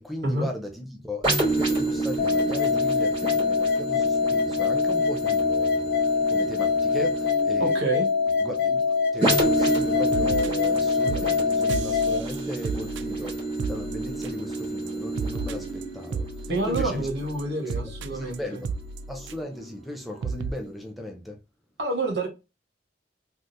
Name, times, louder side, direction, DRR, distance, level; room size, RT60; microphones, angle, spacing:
voice 1, 0.0-5.9 6.3-7.8 8.4-8.8 9.1-13.4 13.7-16.3 16.7-17.1 17.7-18.7 19.1-21.4, left 1 dB, ahead, 0.5 m, -37 dB
sound 1, 1.2-18.8 19.3-19.4, right 2 dB, 30° right, 2.0 m, -30 dB
sound 2, 2.2-12.2, left 5 dB, 70° left, 0.8 m, -24 dB
voice 2, 7.6-8.1 16.5-18.6 21.8-22.3, right 2 dB, 70° right, 1.2 m, -28 dB
sound 3, 9.8-9.9 10.1-10.8 11.1-14.6 14.9-19.6 19.9-20.0 20.2-20.5, right 4 dB, 90° right, 0.3 m, -34 dB
3.6 x 2.4 x 2.7 m
head